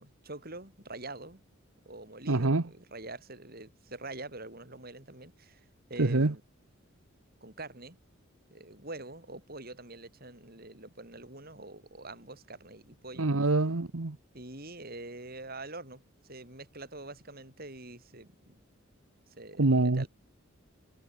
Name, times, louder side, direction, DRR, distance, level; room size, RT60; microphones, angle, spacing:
voice 1, 0.0-1.4 1.9-6.4 7.4-8.0 8.5-13.5 14.3-18.6 19.3-20.1, right 2 dB, 45° right, 7.0 m, -45 dB
voice 2, 2.3-2.6 6.0-6.3 13.2-14.2 19.6-20.1, right 2 dB, 85° right, 1.2 m, -25 dB
head